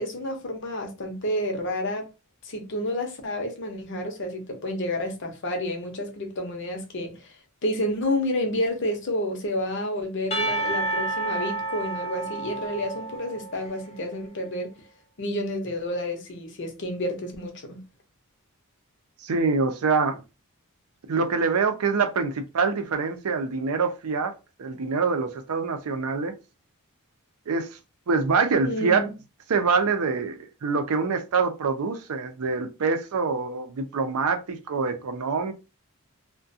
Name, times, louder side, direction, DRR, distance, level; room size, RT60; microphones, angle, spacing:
voice 1, 0.0-2.1 2.4-7.4 7.6-14.7 15.2-17.8 28.6-29.1, left 1 dB, 55° left, 0.7 m, -30 dB
Percussion / Church bell, 10.3-14.0, right 2 dB, 30° left, 0.4 m, -30 dB
voice 2, 19.2-20.2 21.1-24.3 24.6-26.3 27.5-27.7 28.1-29.1 29.5-35.5, right 4 dB, 80° right, 0.5 m, -25 dB
2.3 x 2.2 x 2.6 m
head